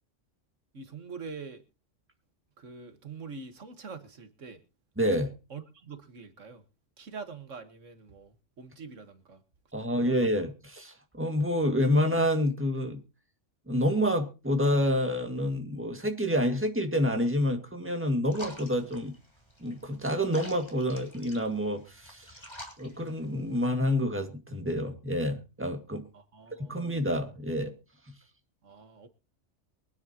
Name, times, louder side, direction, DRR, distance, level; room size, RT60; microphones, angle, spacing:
voice 1, 0.7-1.6 2.6-4.6 5.5-6.6 7.0-9.4 9.8-10.1 26.1-26.9 28.6-29.1, right 5 dB, 85° right, 1.9 m, -44 dB
voice 2, 5.0-5.3 9.7-13.0 13.7-19.1 19.6-22.4 22.8-26.0 26.7-27.7 28.1-28.2, equal, 10° right, 2.0 m, -28 dB
sound 1, 18.3-23.7, equal, 20° left, 3.4 m, -49 dB
24.0 x 9.9 x 2.9 m
omnidirectional pair, 1.3 m